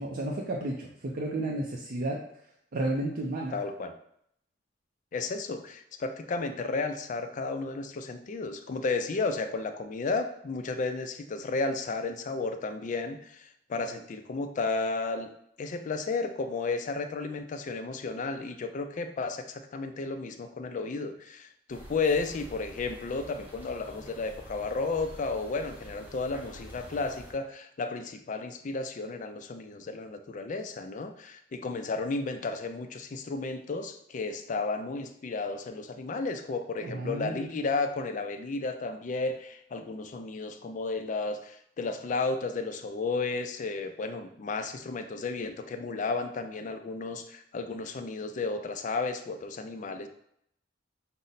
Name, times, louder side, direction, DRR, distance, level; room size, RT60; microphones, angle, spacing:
voice 1, 0.0-2.2 2.7-3.6 36.8-37.6, right 1 dB, 50° right, -1 dB, 0.5 m, -32 dB
voice 2, 3.5-3.9 5.1-15.3 15.6-50.1, left 3 dB, 40° left, 7 dB, 0.4 m, -33 dB
sound 1, 21.7-27.3, equal, 10° right, 0.9 m, -48 dB
5.3 x 2.1 x 3.9 m, 0.71 s
head